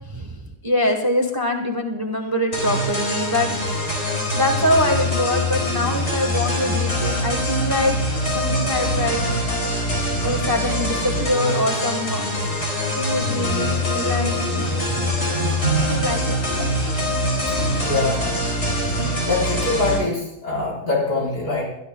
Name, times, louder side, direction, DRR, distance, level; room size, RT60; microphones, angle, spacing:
voice 1, 0.0-3.6 4.3-8.0 8.3-9.5 10.2-12.3 12.9-14.3 15.9-16.4, left 1 dB, 15° right, 4 dB, 1.0 m, -24 dB
sound 1, 2.5-20.0, left 1 dB, 45° left, 4.5 m, -23 dB
sound 2, 12.5-18.5 19.0-19.2, right 5 dB, 45° right, 2.6 m, -31 dB
voice 2, 17.8-18.3 19.2-21.6, left 3 dB, 70° left, -4 dB, 4.7 m, -24 dB
23.0 x 12.5 x 2.2 m, 0.86 s
omnidirectional pair, 1.7 m